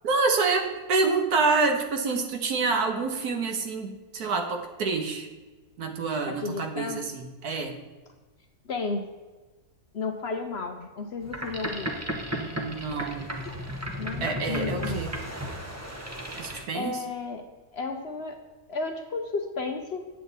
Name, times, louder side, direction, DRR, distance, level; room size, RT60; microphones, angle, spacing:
voice 1, 0.0-5.3 5.8-7.7 12.4-13.3 14.2-15.2 16.4-17.0, right 4 dB, 80° right, 4 dB, 1.6 m, -27 dB
voice 2, 6.2-7.0 8.6-9.1 9.9-11.9 14.0-15.1 16.7-17.5 17.7-18.4 18.7-20.0, left 4 dB, 55° left, 5 dB, 0.8 m, -33 dB
Boat Water vehicle, 11.2-16.6, equal, 15° right, 0.7 m, -34 dB
8.9 x 7.7 x 4.0 m, 1.2 s
omnidirectional pair, 1.6 m